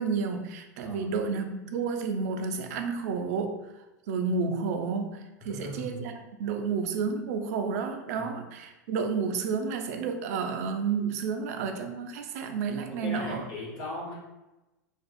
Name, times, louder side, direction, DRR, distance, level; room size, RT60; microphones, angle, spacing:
voice 1, 0.0-3.6 4.1-6.1 6.4-13.5, right 5 dB, 55° right, 5 dB, 0.4 m, -31 dB
voice 2, 5.5-6.0 8.2-8.3 12.9-14.1, left 1 dB, 40° left, -4 dB, 1.0 m, -38 dB
2.5 x 2.3 x 2.4 m, 1.0 s
hypercardioid pair, 95°, 10 cm